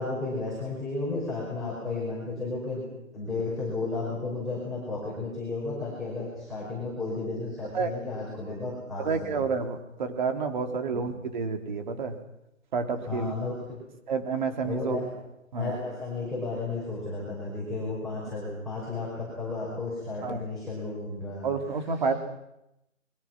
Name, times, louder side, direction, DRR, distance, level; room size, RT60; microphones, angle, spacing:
voice 1, 0.0-2.8 3.1-9.3 10.9-11.1 13.0-13.8 14.6-15.1 15.6-21.5, left 3 dB, ahead, -8 dB, 5.5 m, -33 dB
voice 2, 9.0-12.1 12.7-13.3 14.1-15.0 15.5-15.8 20.2-20.4 21.4-22.1, right 5 dB, 35° right, 6 dB, 3.3 m, -29 dB
29.5 x 23.0 x 6.0 m, 0.86 s
hypercardioid pair, 165°, 40 cm